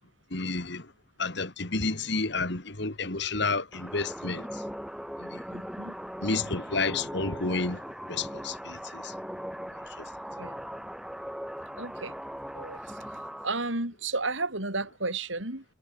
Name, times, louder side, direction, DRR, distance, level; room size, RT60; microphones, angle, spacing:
voice 1, 0.3-0.9 1.2-4.6 5.2-5.4 6.2-7.8 8.1-9.1 10.0-10.1, left 3 dB, 55° left, 2.3 m, -30 dB
sound 1, 3.7-13.5, equal, ahead, 4.3 m, -39 dB
voice 2, 5.5-6.0 10.3-10.6 11.8-12.2 12.5-13.0 13.4-15.6, right 3 dB, 70° right, 5.5 m, -33 dB
head